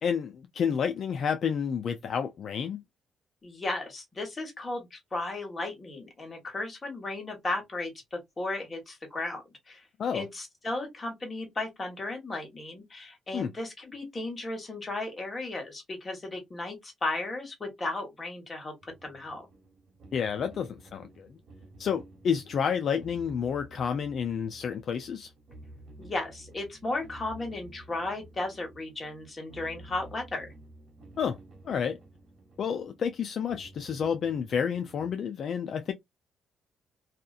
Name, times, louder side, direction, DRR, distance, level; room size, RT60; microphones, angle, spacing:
voice 1, 0.0-2.8 10.0-10.3 13.3-13.5 20.1-21.3 21.8-25.3 31.2-31.4 31.6-32.0 32.6-35.9, left 7 dB, 60° left, 0.3 m, -30 dB
voice 2, 3.4-9.9 10.1-19.5 26.0-30.5, left 2 dB, 30° left, 1.4 m, -35 dB
sound 1, 18.8-35.1, right 2 dB, 60° right, 1.3 m, -52 dB
2.8 x 2.4 x 2.3 m
cardioid pair, 90°, 0 cm